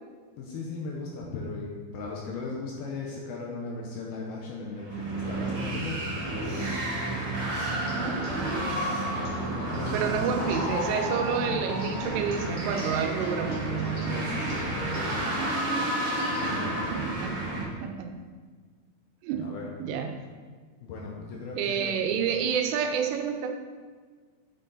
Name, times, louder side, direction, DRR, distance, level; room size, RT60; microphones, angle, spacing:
voice 1, 0.4-6.6 9.8-10.1 14.0-15.6 16.3-16.8 19.4-19.7 20.8-22.1, left 3 dB, 80° left, -2 dB, 2.2 m, -37 dB
sound 1, 4.7-17.6, right 1 dB, 40° right, 3.3 m, -31 dB
Respiratory sounds, 6.4-6.9 7.5-7.7 8.6-9.1 9.7-10.5, right 3 dB, 65° right, 3.2 m, -51 dB
sound 2, 7.6-17.4, left 1 dB, 15° right, 1.1 m, -41 dB
voice 2, 7.9-8.6 9.9-13.7 16.4-16.6 16.9-17.4 17.8-18.3 19.2-19.5 19.8-20.2 21.6-23.5, right 7 dB, 85° right, 4 dB, 3.3 m, -29 dB
9.8 x 6.6 x 4.0 m, 1.5 s
omnidirectional pair, 5.5 m